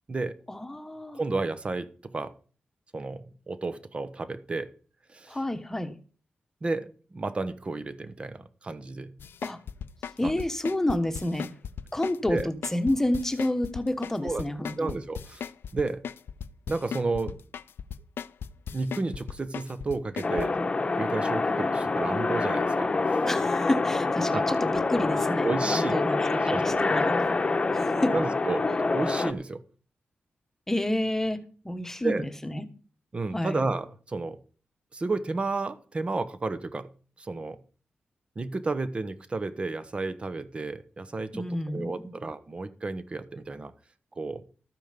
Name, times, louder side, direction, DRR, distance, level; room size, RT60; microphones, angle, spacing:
voice 1, 0.5-1.2 5.3-6.0 9.4-9.6 10.2-11.5 11.9-14.9 23.3-27.3 27.7-28.1 30.7-32.6 33.3-33.6 41.3-42.2, left 1 dB, 10° left, 9 dB, 1.4 m, -29 dB
voice 2, 1.1-2.3 2.9-4.7 5.1-5.4 6.6-9.2 10.2-10.4 12.3-12.5 14.2-14.4 14.8-15.4 15.7-16.0 16.7-17.4 18.7-20.6 21.0-22.9 24.3-24.6 25.4-26.8 28.1-28.7 28.9-29.6 32.0-32.3 33.1-34.4 34.9-36.9 37.2-37.6 38.4-43.7 44.2-44.4, right 3 dB, 30° right, 12 dB, 1.1 m, -32 dB
sound 1, 9.2-20.5, left 8 dB, 85° left, 0.6 m, -37 dB
sound 2, 20.2-29.3, left 3 dB, 30° left, 1.1 m, -26 dB
13.5 x 9.1 x 5.3 m, 0.40 s
wide cardioid pair, 140°, 4 cm